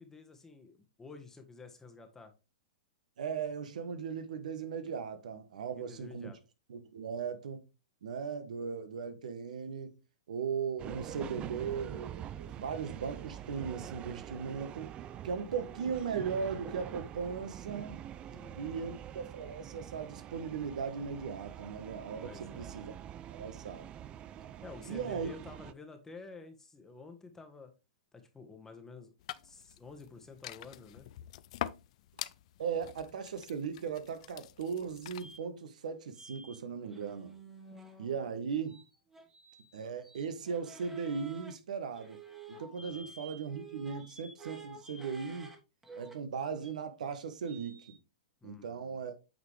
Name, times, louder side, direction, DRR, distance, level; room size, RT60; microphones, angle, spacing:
voice 1, 0.0-2.3 5.7-6.4 18.3-18.9 22.2-22.7 24.6-27.7 28.1-29.1 29.4-31.1 42.8-43.1 48.4-49.0, left 4 dB, 10° left, 1.2 m, -51 dB
voice 2, 3.2-6.3 6.7-7.6 8.0-9.9 10.3-14.9 15.2-18.0 18.5-22.9 23.3-23.9 24.9-25.3 32.6-37.3 38.0-38.8 39.7-42.2 42.5-45.5 46.0-48.0 48.4-49.2, right 6 dB, 75° right, 1.2 m, -38 dB
sound 1, 10.8-25.7, right 10 dB, 25° right, 0.4 m, -45 dB
sound 2, 29.2-35.4, left 14 dB, 55° left, 0.4 m, -45 dB
sound 3, 35.2-35.4 36.1-36.6 36.8-38.3 38.7-41.5 41.9-45.6 45.8-46.1 46.6-46.7 47.4-47.9, right 4 dB, 10° right, 1.5 m, -51 dB
8.5 x 4.0 x 3.2 m
hypercardioid pair, 125°, 4 cm